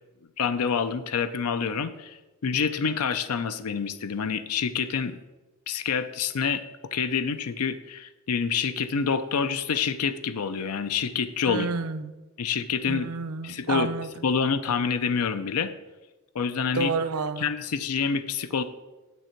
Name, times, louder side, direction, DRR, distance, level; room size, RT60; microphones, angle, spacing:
voice 1, 0.4-5.2 5.7-6.6 6.9-11.7 12.4-13.1 13.4-13.9 14.2-15.7 16.3-16.9 17.4-18.6, left 6 dB, 90° left, 11 dB, 0.5 m, -27 dB
voice 2, 11.4-12.1 12.9-14.1 16.7-17.5, right 4 dB, 85° right, 12 dB, 0.6 m, -29 dB
9.2 x 8.0 x 4.5 m, 1.1 s
head